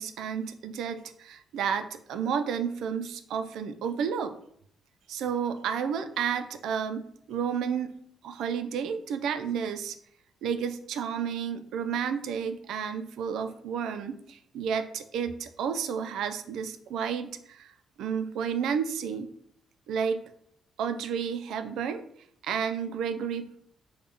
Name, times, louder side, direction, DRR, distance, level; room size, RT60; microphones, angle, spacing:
voice 1, 0.0-4.3 5.1-7.9 8.2-10.0 10.4-17.7 18.0-19.3 19.9-20.2 20.8-22.0 22.4-23.6, right 7 dB, 80° right, 9 dB, 0.3 m, -31 dB
3.4 x 2.1 x 3.8 m, 0.65 s
cardioid pair, 90°, 0 cm